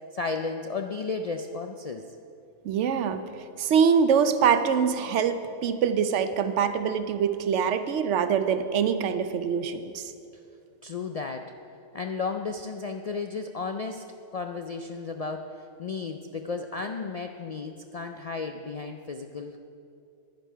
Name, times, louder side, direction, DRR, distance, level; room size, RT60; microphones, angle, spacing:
voice 1, 0.1-2.1 10.8-11.5 11.9-14.0 14.3-19.6, left 4 dB, 60° left, 5 dB, 0.4 m, -33 dB
voice 2, 2.6-3.2 3.6-10.1, right 7 dB, 80° right, 10 dB, 1.0 m, -24 dB
10.5 x 10.5 x 5.6 m, 2.5 s
omnidirectional pair, 1.2 m